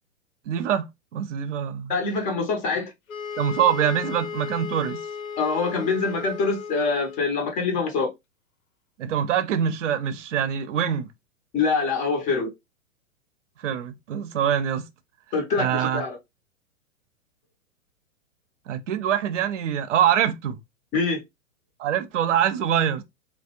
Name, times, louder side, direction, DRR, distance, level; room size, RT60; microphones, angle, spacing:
voice 1, 0.5-1.9 3.4-5.0 9.0-11.1 13.6-14.9 15.5-16.0 18.7-20.6 21.8-23.0, right 9 dB, 65° right, 0.6 m, -24 dB
voice 2, 1.9-2.9 5.4-8.1 11.5-12.5 15.3-16.2 20.9-21.2, left 4 dB, 20° left, 0.5 m, -24 dB
sound 1, 3.1-7.5, left 6 dB, 80° left, 0.6 m, -35 dB
2.4 x 2.0 x 2.8 m
figure-of-eight pair, 110°, 40 cm